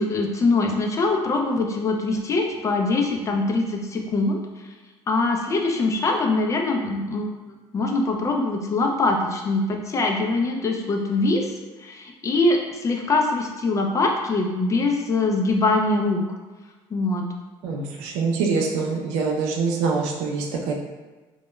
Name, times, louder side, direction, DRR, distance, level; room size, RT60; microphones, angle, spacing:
voice 1, 0.0-4.4 4.6-4.7 5.1-7.3 7.7-11.5 11.8-16.2 16.9-17.3, left 2 dB, 30° left, 2 dB, 0.4 m, -23 dB
voice 2, 17.6-20.7, right 4 dB, 90° right, 0 dB, 0.4 m, -24 dB
2.2 x 2.2 x 2.9 m, 1.2 s
cardioid pair, 105°, 11 cm